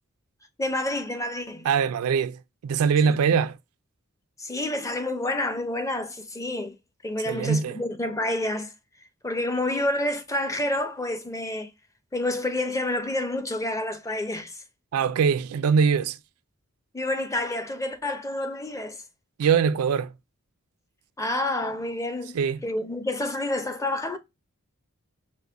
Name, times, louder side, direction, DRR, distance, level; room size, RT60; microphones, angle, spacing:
voice 1, 0.6-1.7 3.0-3.1 4.4-6.7 7.0-8.7 9.2-11.7 12.1-14.6 16.9-19.0 21.2-22.4 22.6-24.2, left 1 dB, 15° left, 0.5 m, -28 dB
voice 2, 1.6-3.6 7.3-7.8 14.9-16.2 19.4-20.1 22.3-22.6, right 6 dB, 80° right, 0.3 m, -22 dB
5.1 x 2.1 x 3.4 m
head